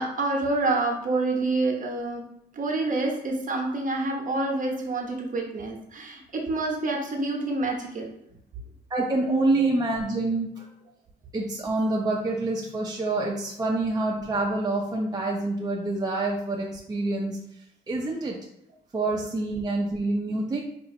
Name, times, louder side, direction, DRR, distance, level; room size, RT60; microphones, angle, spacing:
voice 1, 0.0-2.2 2.5-8.1 9.6-9.7, right 2 dB, 40° right, 1 dB, 0.9 m, -27 dB
voice 2, 8.9-10.7 11.3-17.4 17.9-18.4 18.9-20.6, right 2 dB, 20° right, -1 dB, 0.6 m, -27 dB
4.9 x 2.8 x 2.6 m, 0.78 s
cardioid pair, 90°, 20 cm